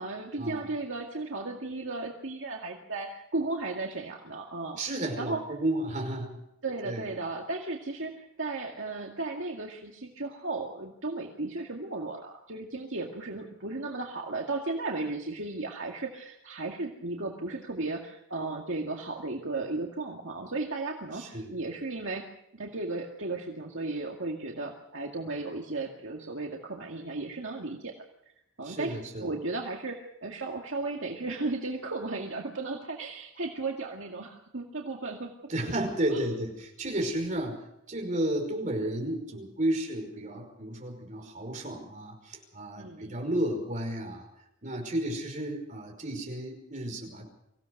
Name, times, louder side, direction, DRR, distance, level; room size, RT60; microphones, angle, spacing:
voice 1, 0.0-4.8 5.2-5.4 6.6-22.3 22.5-27.9 28.6-35.3 36.1-36.2 42.8-43.2, right 3 dB, 65° right, 0 dB, 2.1 m, -35 dB
voice 2, 4.8-6.4 6.8-7.1 21.1-21.5 28.6-29.3 35.5-44.3 44.6-47.3, right 1 dB, 35° right, 2 dB, 5.3 m, -32 dB
25.0 x 16.5 x 6.6 m, 0.80 s
head